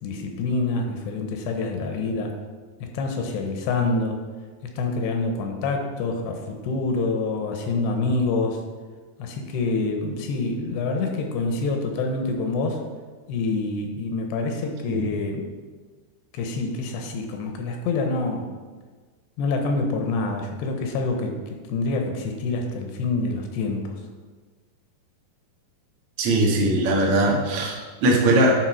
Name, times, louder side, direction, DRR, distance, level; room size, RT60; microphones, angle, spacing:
voice 1, 0.0-2.3 2.8-4.2 4.6-8.6 9.2-12.8 13.3-15.5 16.3-18.5 19.4-23.9, left 3 dB, 80° left, 3 dB, 2.9 m, -26 dB
voice 2, 26.2-28.5, right 1 dB, 85° right, -3 dB, 1.2 m, -20 dB
10.0 x 5.2 x 4.7 m, 1.4 s
omnidirectional pair, 5.1 m